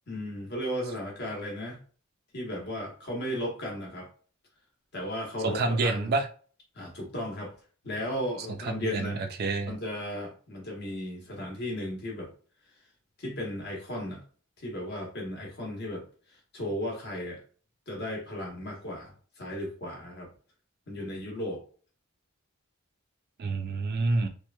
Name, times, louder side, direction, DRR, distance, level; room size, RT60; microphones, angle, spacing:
voice 1, 0.1-1.8 2.3-4.1 4.9-6.1 6.7-7.5 7.8-9.2 9.6-12.3 13.2-14.2 14.6-17.4 17.9-20.3 20.9-21.6, left 1 dB, 50° left, -1 dB, 1.0 m, -35 dB
voice 2, 5.4-6.3 8.6-9.8 23.4-24.3, right 3 dB, 50° right, 6 dB, 0.4 m, -28 dB
2.9 x 2.4 x 2.2 m, 0.41 s
head